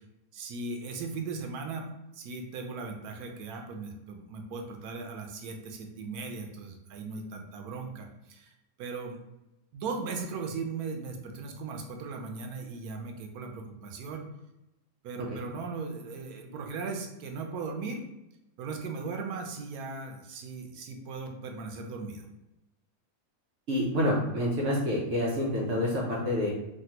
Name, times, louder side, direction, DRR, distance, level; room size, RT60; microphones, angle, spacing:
voice 1, 0.3-1.9 2.1-8.5 8.8-9.2 9.7-14.3 15.0-18.0 18.6-22.3, right 4 dB, 85° right, 3 dB, 1.1 m, -38 dB
voice 2, 23.7-26.5, left 1 dB, 60° right, -4 dB, 0.9 m, -28 dB
3.3 x 2.3 x 2.8 m, 0.92 s
omnidirectional pair, 1.6 m